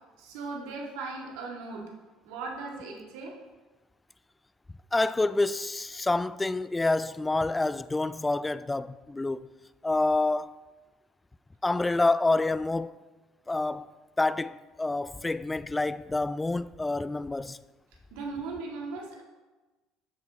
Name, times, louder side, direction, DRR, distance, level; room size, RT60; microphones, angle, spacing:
voice 1, 0.2-1.9 2.2-3.4 18.1-19.2, right 3 dB, 70° right, 2.0 m, -38 dB
voice 2, 4.9-9.5 9.8-10.6 11.6-13.0 13.5-13.9 14.2-17.6, left 2 dB, 15° left, 0.4 m, -27 dB
12.5 x 7.7 x 2.9 m
hypercardioid pair, 65°, 0 cm